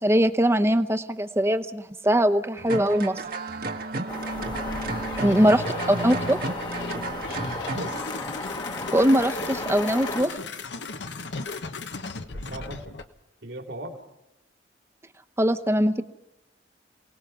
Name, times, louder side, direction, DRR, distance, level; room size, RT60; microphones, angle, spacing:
voice 1, 0.0-3.2 5.2-6.4 8.9-10.3 15.4-16.0, equal, 15° right, 9 dB, 0.9 m, -21 dB
sound 1, 2.6-8.0, right 2 dB, 55° right, 1.4 m, -33 dB
sound 2, 4.1-10.2, left 2 dB, 25° left, 1.2 m, -35 dB
sound 3, 4.3-13.0, left 3 dB, 75° left, 1.2 m, -36 dB
voice 2, 5.1-6.6 7.5-8.0 12.3-13.0 13.4-14.0, right 1 dB, 75° right, 2 dB, 3.0 m, -39 dB
28.0 x 18.5 x 5.8 m, 0.93 s
head